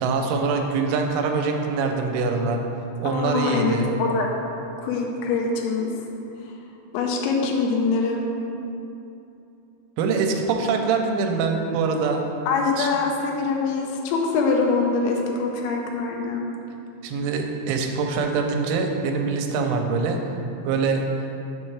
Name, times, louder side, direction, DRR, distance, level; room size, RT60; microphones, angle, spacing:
voice 1, 0.0-2.6 3.0-3.9 10.0-12.3 12.8-12.9 17.0-20.2 20.6-21.0, right 4 dB, 85° right, 3 dB, 3.0 m, -24 dB
voice 2, 3.0-4.3 4.8-5.9 6.9-8.3 12.5-16.5, left 4 dB, 80° left, 0 dB, 3.0 m, -24 dB
7.1 x 5.4 x 3.2 m, 2.8 s
omnidirectional pair, 5.5 m